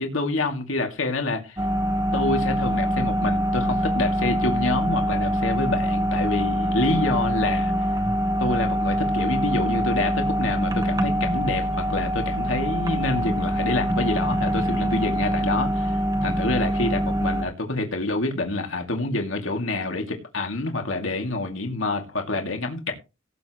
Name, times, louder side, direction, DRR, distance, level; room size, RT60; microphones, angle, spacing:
voice 1, 0.0-1.6 2.1-7.7 8.4-22.9, left 2 dB, 75° left, 2.4 m, -27 dB
sound 1, 1.6-17.5, equal, 20° right, 1.2 m, -24 dB
17.5 x 8.3 x 3.0 m
head